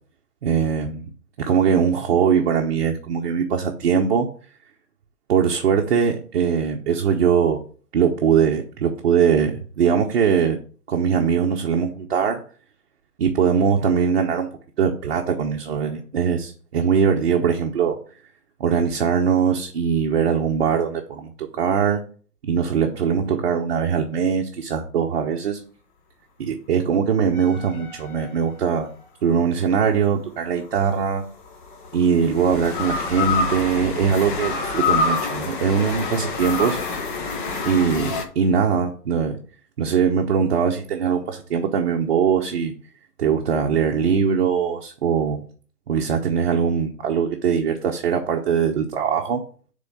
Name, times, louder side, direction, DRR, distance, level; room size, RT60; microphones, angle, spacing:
voice 1, 0.4-1.1 1.4-4.3 5.3-7.6 7.9-10.6 10.9-12.4 13.2-14.5 14.8-18.0 18.6-22.0 22.4-25.6 26.4-28.9 29.2-31.2 31.9-36.8 37.6-39.4 39.8-42.7 43.2-45.4 45.9-49.4, right 7 dB, 40° right, 1 dB, 0.9 m, -21 dB
sound 1, 27.3-28.8 30.7-38.2, left 4 dB, 30° left, 0.9 m, -27 dB
6.7 x 3.8 x 5.3 m, 0.43 s
figure-of-eight pair, 135°, 48 cm